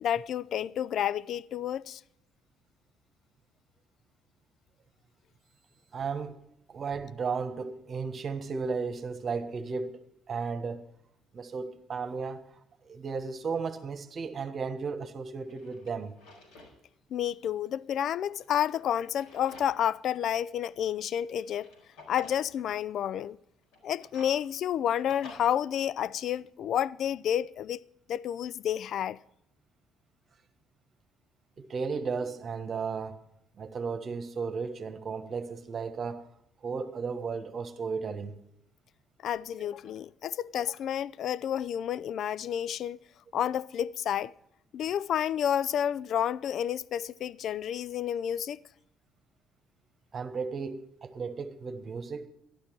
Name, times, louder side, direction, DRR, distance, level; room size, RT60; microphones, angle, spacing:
voice 1, 0.0-2.0 17.1-21.7 22.1-23.4 23.8-27.8 28.1-29.2 39.2-43.0 43.3-44.3 44.7-48.6, left 10 dB, 60° left, 0.4 m, -30 dB
voice 2, 5.9-6.4 6.7-10.0 10.3-10.8 11.3-12.4 12.8-16.2 31.6-33.2 33.6-36.3 36.6-38.4 50.1-52.3, right 5 dB, 45° right, 1.4 m, -34 dB
Drawer open or close, 14.7-14.8 15.3-16.8 17.1-17.2 18.3-20.0 20.4-20.5 21.3-22.4 23.6-25.3, left 3 dB, 75° left, 4.4 m, -52 dB
12.0 x 11.5 x 4.6 m
hypercardioid pair, 55°, 0 cm